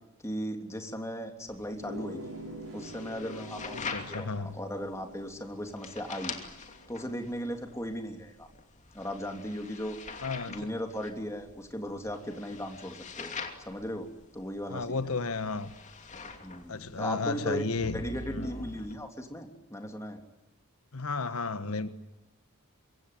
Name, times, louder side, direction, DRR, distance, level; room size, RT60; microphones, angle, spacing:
voice 1, 0.2-2.3 2.7-6.4 6.9-8.5 8.9-10.0 10.5-13.3 13.7-14.1 14.3-15.1 16.4-17.6 17.9-20.2, equal, 15° left, 4 dB, 3.1 m, -37 dB
sound 1, 1.5-18.9, left 4 dB, 35° left, 2.8 m, -44 dB
sound 2, 1.7-7.0, equal, 75° right, 7.5 m, -46 dB
voice 2, 3.7-4.6 10.2-10.7 14.7-15.7 16.7-18.0 18.3-18.4 20.9-21.9, left 3 dB, 75° left, 11 dB, 1.4 m, -33 dB
25.5 x 23.5 x 9.4 m, 0.96 s
head